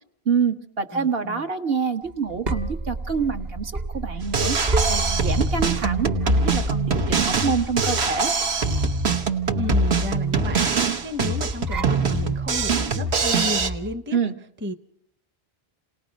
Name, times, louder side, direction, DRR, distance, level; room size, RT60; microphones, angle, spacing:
voice 1, 0.2-4.6 4.9-8.3 14.1-14.3, right 5 dB, 65° right, 6 dB, 1.4 m, -26 dB
voice 2, 0.9-1.5 9.5-14.2 14.6-14.7, left 1 dB, 15° right, 9 dB, 0.6 m, -32 dB
sound 1, 2.1-13.9, right 2 dB, 45° right, 1.2 m, -31 dB
Drum kit, 4.2-13.7, right 4 dB, 85° right, 1.4 m, -23 dB
28.5 x 18.5 x 5.2 m, 0.70 s
omnidirectional pair, 1.1 m